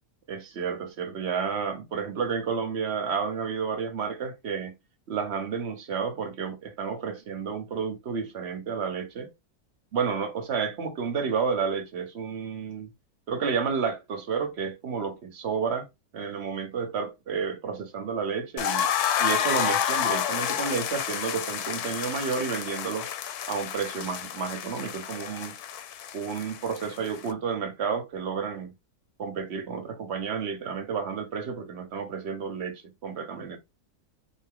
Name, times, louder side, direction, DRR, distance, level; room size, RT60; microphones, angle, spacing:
voice 1, 0.3-4.7 5.1-9.3 9.9-12.9 13.3-15.9 16.1-18.9 19.2-23.1 23.5-25.6 26.1-28.7 29.2-33.6, right 6 dB, 50° right, 1.0 m, -31 dB
sound 1, 18.6-27.3, left 9 dB, 75° left, 1.1 m, -30 dB
3.9 x 2.7 x 3.7 m
omnidirectional pair, 1.7 m